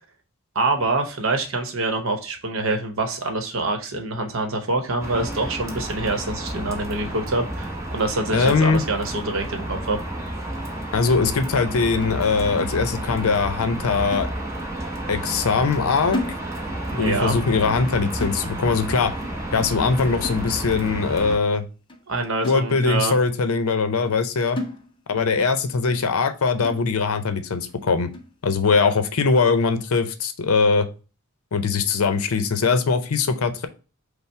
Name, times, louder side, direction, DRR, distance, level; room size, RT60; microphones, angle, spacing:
voice 1, 0.5-10.0 16.9-17.4 22.1-23.1, right 2 dB, 65° right, 5 dB, 0.9 m, -25 dB
sound 1, 5.0-21.4, right 1 dB, 15° right, 0.8 m, -31 dB
voice 2, 8.3-8.8 10.9-14.3 15.1-16.2 17.0-19.1 19.5-21.7 22.4-24.6 25.1-28.1 28.4-30.9 31.5-33.7, left 4 dB, 75° left, 9 dB, 0.6 m, -21 dB
sound 2, 12.0-13.3 13.6-13.8 14.1-14.8 15.1-15.4 15.6-16.9 17.2-17.4 17.7-18.0 18.2-18.9 19.2-19.5 19.8-19.9 20.2-20.9 21.4-21.5 21.9-22.0 22.4-23.1 23.5-23.6 24.1-24.2 24.6-25.3 25.6-25.7 26.1-26.3 26.6-27.2 27.7-27.8 28.1-28.4, left 1 dB, 20° left, 0.5 m, -35 dB
5.6 x 2.0 x 4.3 m, 0.34 s
head